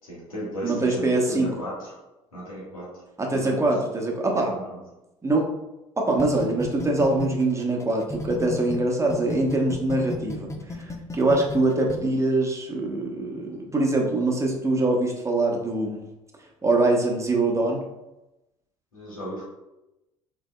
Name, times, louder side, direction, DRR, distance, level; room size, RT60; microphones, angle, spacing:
voice 1, 0.0-3.8 4.3-4.8 11.2-11.5 18.9-19.4, equal, 85° left, -6 dB, 1.5 m, -36 dB
voice 2, 0.6-1.5 3.2-4.6 5.2-5.5 6.0-16.0 16.6-17.8, right 2 dB, 15° right, 0 dB, 1.1 m, -23 dB
sound 1, 6.2-8.8 9.1-12.0, left 2 dB, 15° left, 0.6 m, -33 dB
5.0 x 3.3 x 2.2 m, 0.96 s
figure-of-eight pair, 60°, 17 cm